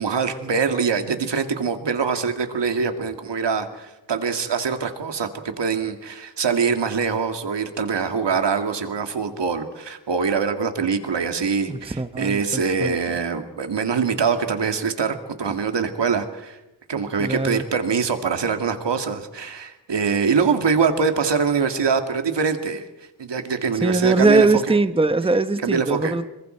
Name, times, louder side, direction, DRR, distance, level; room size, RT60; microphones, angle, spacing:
voice 1, 0.0-5.3 5.6-16.6 16.9-22.9 23.2-24.5 25.6-26.2, right 5 dB, 80° right, 7 dB, 2.2 m, -23 dB
voice 2, 11.7-12.9 17.2-17.6 23.8-26.2, right 3 dB, 15° right, 11 dB, 0.9 m, -21 dB
27.0 x 23.5 x 4.5 m, 0.98 s
wide cardioid pair, 100°, 42 cm